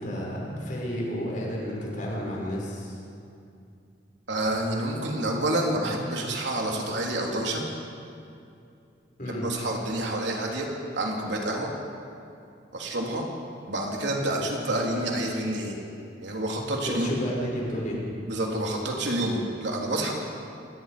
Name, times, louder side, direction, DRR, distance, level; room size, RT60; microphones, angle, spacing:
voice 1, 0.0-3.0 9.2-9.5 16.7-18.0, equal, 45° left, -3 dB, 6.0 m, -31 dB
voice 2, 4.3-7.7 9.3-10.7 10.9-11.7 12.7-13.3 13.7-15.8 16.2-17.1 18.3-20.1, right 1 dB, 70° right, -1 dB, 3.5 m, -28 dB
27.0 x 18.5 x 5.2 m, 2.5 s
head